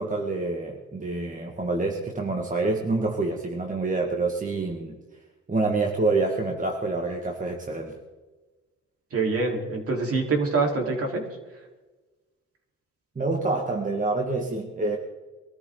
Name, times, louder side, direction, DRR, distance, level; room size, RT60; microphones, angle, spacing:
voice 1, 0.0-5.0 5.5-7.9 13.2-15.0, right 3 dB, 25° right, 2 dB, 2.0 m, -27 dB
voice 2, 9.1-11.2, right 3 dB, 50° right, 0 dB, 4.3 m, -25 dB
23.0 x 13.5 x 4.0 m, 1.2 s
cardioid pair, 90°, 30 cm